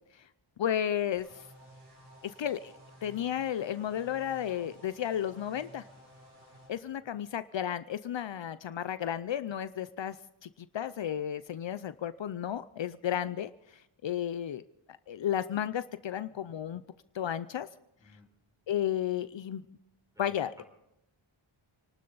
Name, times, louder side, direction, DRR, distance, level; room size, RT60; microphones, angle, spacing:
voice 1, 0.6-1.5 2.2-2.7 3.0-5.8 6.7-10.2 10.4-10.5 10.7-14.6 14.9-16.8 17.1-17.7 18.7-19.6 20.2-20.6, left 10 dB, 65° left, 13 dB, 0.6 m, -33 dB
sound 1, 1.2-6.7, right 1 dB, 55° right, 7.9 m, -55 dB
voice 2, 6.7-7.1 18.0-18.3 20.1-20.4, left 3 dB, 5° right, 1 dB, 5.1 m, -59 dB
28.0 x 12.5 x 4.0 m, 0.86 s
wide cardioid pair, 120°, 48 cm